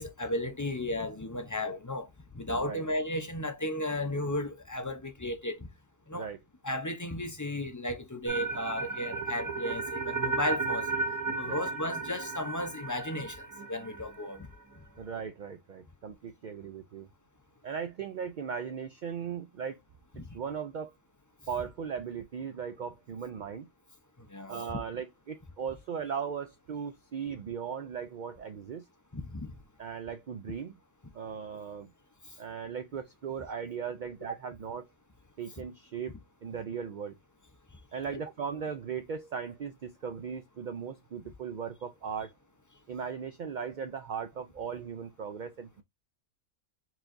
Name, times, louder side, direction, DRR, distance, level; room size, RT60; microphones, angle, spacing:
voice 1, 0.0-2.1 2.3-5.7 6.1-6.3 6.6-10.9 11.3-14.5 20.2-20.3 24.3-24.6 29.1-29.5 38.1-38.2, left 1 dB, 20° left, 0.5 m, -34 dB
sound 1, 8.3-14.4, right 3 dB, 20° right, 0.7 m, -34 dB
voice 2, 15.0-17.1 17.6-19.8 20.3-20.9 21.5-23.7 24.5-28.8 29.8-30.8 31.1-31.9 32.4-34.9 35.4-37.1 37.9-42.3 42.9-45.8, right 7 dB, 70° right, 0.4 m, -38 dB
4.5 x 4.0 x 2.6 m
omnidirectional pair, 1.3 m